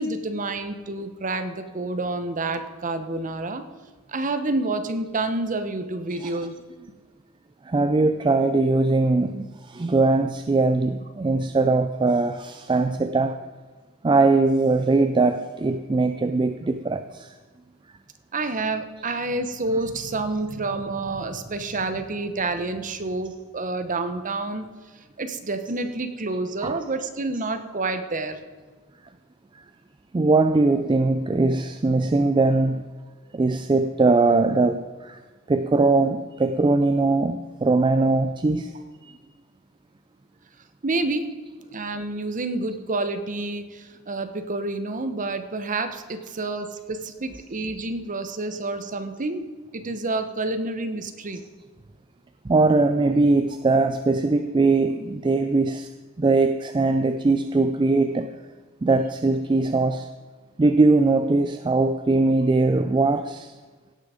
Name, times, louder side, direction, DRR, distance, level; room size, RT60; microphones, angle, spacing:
voice 1, 0.0-3.6 4.1-6.5 18.3-24.6 25.2-28.4 40.8-41.3 41.7-49.4 49.7-51.4, right 2 dB, 40° right, 8 dB, 0.9 m, -28 dB
voice 2, 7.7-13.4 14.0-17.3 26.6-26.8 29.5-29.6 30.1-32.9 33.3-35.2 35.5-38.7 39.0-39.1 52.4-55.9 56.2-58.3 58.8-60.1 60.6-63.5, right 3 dB, 20° right, 8 dB, 0.4 m, -21 dB
17.0 x 6.1 x 5.0 m, 1.4 s
head